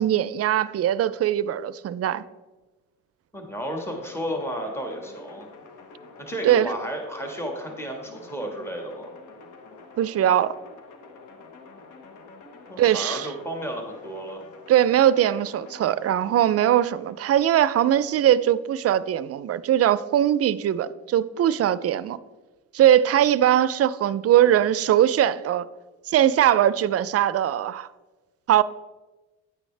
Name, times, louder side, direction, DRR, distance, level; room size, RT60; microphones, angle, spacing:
voice 1, 0.0-2.2 6.4-6.7 10.0-10.6 12.8-13.3 14.7-22.2 22.7-25.7 26.1-27.9 28.5-28.6, right 11 dB, 50° right, 0.4 m, -21 dB
voice 2, 3.3-5.5 6.2-9.1 12.7-14.4, equal, 10° left, 1.6 m, -32 dB
sound 1, 3.7-17.5, left 4 dB, 90° left, 1.2 m, -47 dB
9.7 x 9.0 x 3.3 m
cardioid pair, 90°, 30 cm